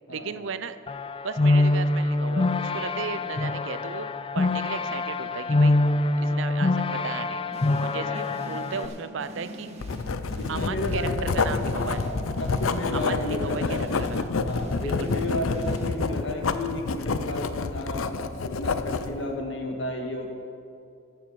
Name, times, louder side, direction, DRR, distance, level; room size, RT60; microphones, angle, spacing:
voice 1, 0.1-0.8 1.2-4.1 4.3-5.8 6.2-7.4 7.8-9.7 10.5-12.0 12.9-14.4 14.8-15.4, right 5 dB, 70° right, 12 dB, 0.5 m, -35 dB
sound 1, 0.9-8.9, left 2 dB, 25° left, 0.3 m, -25 dB
sound 2, 7.5-16.3, equal, 30° right, 1.4 m, -42 dB
Writing, 9.8-19.1, left 4 dB, 80° left, 0.6 m, -28 dB
voice 2, 10.4-13.8 14.4-20.3, left 1 dB, 60° left, 2 dB, 1.7 m, -33 dB
14.5 x 7.1 x 6.3 m, 2.6 s
head